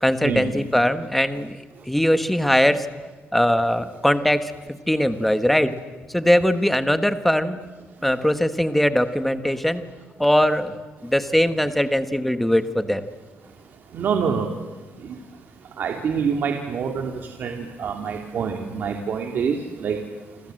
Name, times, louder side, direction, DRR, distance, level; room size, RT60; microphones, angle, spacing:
voice 1, 0.0-1.6 1.9-2.9 3.3-4.5 4.9-5.7 6.1-7.6 8.0-9.8 10.2-10.7 11.0-13.1, equal, 5° left, 10 dB, 1.3 m, -20 dB
voice 2, 13.9-14.5 15.1-15.2 15.8-17.1 17.4-20.0, right 6 dB, 50° right, 3 dB, 2.3 m, -26 dB
28.0 x 26.0 x 7.8 m, 1.3 s
cardioid pair, 165°, 4 cm